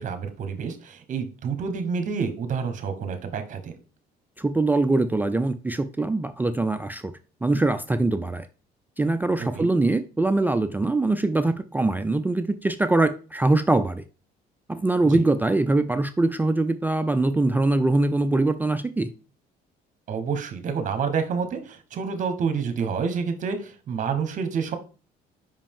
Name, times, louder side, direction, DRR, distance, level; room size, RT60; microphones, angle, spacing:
voice 1, 0.0-3.7 9.4-9.7 15.0-15.2 20.1-24.7, right 6 dB, 50° right, 1.1 m, -28 dB
voice 2, 4.4-7.1 7.4-8.5 9.0-14.0 14.7-19.1, right 2 dB, 10° right, 0.3 m, -23 dB
5.3 x 5.1 x 3.6 m
cardioid pair, 110°, 17 cm